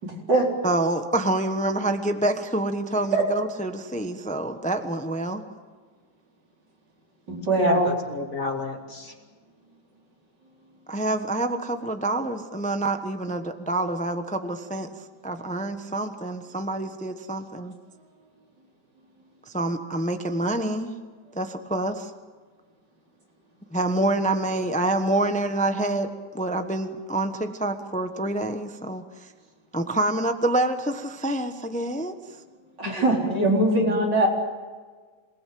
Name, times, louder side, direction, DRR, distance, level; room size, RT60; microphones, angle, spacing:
voice 1, 0.0-0.5 3.1-3.2 7.3-7.9 32.8-34.3, right 2 dB, 85° right, -1 dB, 4.9 m, -22 dB
voice 2, 0.6-5.4 10.9-17.7 19.5-20.9 21.3-22.1 23.7-29.3 29.7-32.2, right 2 dB, 5° left, 7 dB, 0.9 m, -27 dB
voice 3, 7.6-9.1 32.8-32.9 33.3-34.0, left 3 dB, 50° left, 2 dB, 2.9 m, -32 dB
27.0 x 19.5 x 7.8 m, 1.4 s
omnidirectional pair, 1.8 m